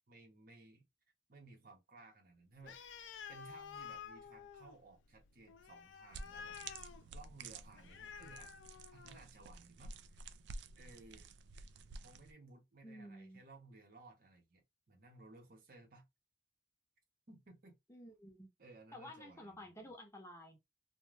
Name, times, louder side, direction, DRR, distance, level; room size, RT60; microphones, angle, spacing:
voice 1, 0.1-0.8 1.3-6.6 7.1-8.5 8.9-10.2 10.8-11.3 12.0-16.1 17.3-17.8 18.6-19.9, right 2 dB, 50° right, 0.8 m, -59 dB
Animal, 2.6-9.3, left 7 dB, 75° left, 0.3 m, -52 dB
sound 1, 6.1-12.3, right 3 dB, 65° right, 0.3 m, -51 dB
voice 2, 12.8-13.4 17.9-18.5 18.9-20.6, left 1 dB, 15° left, 0.7 m, -52 dB
2.4 x 2.1 x 3.1 m
head